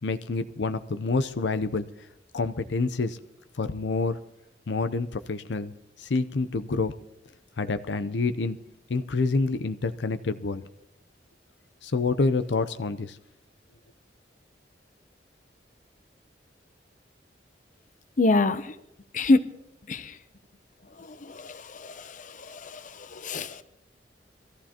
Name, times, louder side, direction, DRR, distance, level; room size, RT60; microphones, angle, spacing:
voice 1, 0.0-1.9 2.3-3.2 3.6-4.2 4.7-6.9 7.6-8.6 8.9-10.6 11.8-13.2, left 3 dB, 85° left, 0.6 m, -27 dB
voice 2, 18.2-18.6 19.1-19.4 19.9-20.1 21.3-22.0 22.5-22.7 23.1-23.6, left 2 dB, 45° left, 0.7 m, -24 dB
22.5 x 14.5 x 2.9 m
head